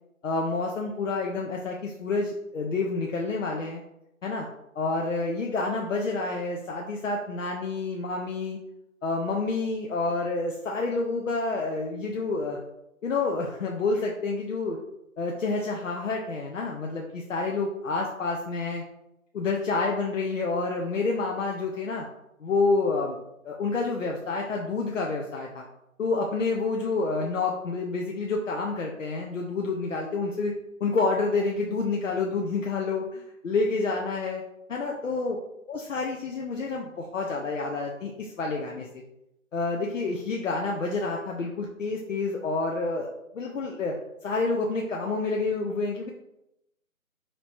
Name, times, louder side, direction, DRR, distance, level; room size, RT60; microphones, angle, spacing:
voice 1, 0.2-3.8 4.2-4.5 4.8-8.6 9.0-12.6 13.0-14.8 15.2-18.8 19.3-22.1 22.4-23.2 23.4-25.7 26.0-30.5 30.8-34.4 34.7-35.4 35.7-39.0 39.5-43.1 43.3-44.0 44.2-46.1, left 3 dB, 65° left, -1 dB, 0.7 m, -28 dB
3.1 x 3.0 x 4.2 m, 0.85 s
figure-of-eight pair, 155°, 42 cm